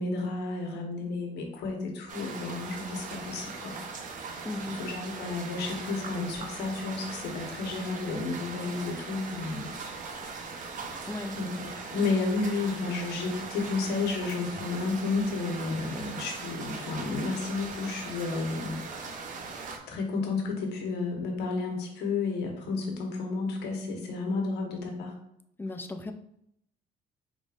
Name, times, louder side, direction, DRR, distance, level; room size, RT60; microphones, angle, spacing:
voice 1, 0.0-3.8 4.7-9.7 10.4-11.0 11.4-18.8 19.9-25.1, left 3 dB, 80° left, 2 dB, 1.1 m, -32 dB
sound 1, 2.1-19.8, right 4 dB, 50° right, 0.8 m, -40 dB
voice 2, 4.4-4.8 11.1-11.4 25.6-26.1, left 2 dB, 10° left, 6 dB, 0.4 m, -35 dB
4.8 x 3.9 x 2.5 m, 0.76 s
cardioid pair, 110°, 17 cm